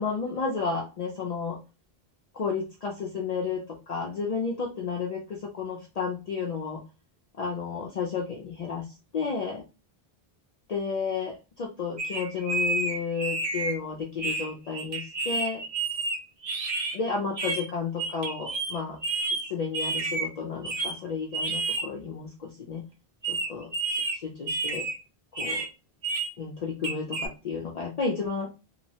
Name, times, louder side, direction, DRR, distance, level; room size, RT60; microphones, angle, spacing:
voice 1, 0.0-1.6 2.3-6.8 7.4-9.6 10.7-15.6 16.9-19.0 19.5-22.8 23.3-24.9 25.4-25.7 26.4-28.5, left 5 dB, 55° left, -1 dB, 0.5 m, -32 dB
sound 1, 12.0-13.8 14.2-17.0 17.4-17.6 18.0-18.8 19.0-20.3 20.6-20.9 21.3-21.9 23.2-24.2 24.5-25.0 25.3-25.7 26.0-26.3 26.8-27.3, right 3 dB, 45° right, 0.5 m, -30 dB
2.9 x 2.0 x 2.7 m, 0.30 s
omnidirectional pair, 1.0 m